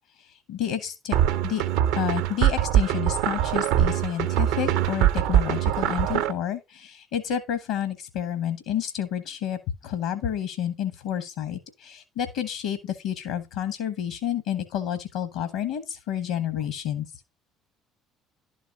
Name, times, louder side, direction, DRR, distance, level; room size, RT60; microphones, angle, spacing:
voice 1, 0.2-1.2 1.4-1.6 2.0-17.1, left 9 dB, 65° left, 1.0 m, -30 dB
sound 1, 1.1-6.3, right 11 dB, 65° right, 0.6 m, -23 dB
11.5 x 4.0 x 5.1 m
figure-of-eight pair, 55°, 0 cm